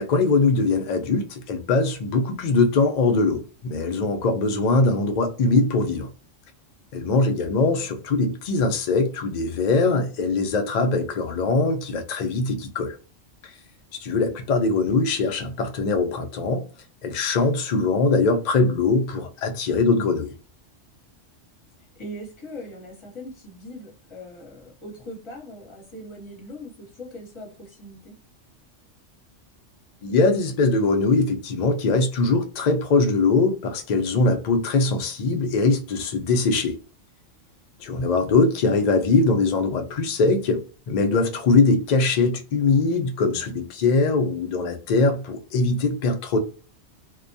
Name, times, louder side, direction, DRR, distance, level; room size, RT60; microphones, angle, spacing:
voice 1, 0.0-6.1 6.9-13.0 14.0-16.6 17.0-20.3 30.0-36.8 37.8-46.4, left 3 dB, 75° left, 0.4 m, -22 dB
voice 2, 22.0-28.2, left 1 dB, 25° left, 0.9 m, -40 dB
2.2 x 2.2 x 2.5 m
omnidirectional pair, 1.3 m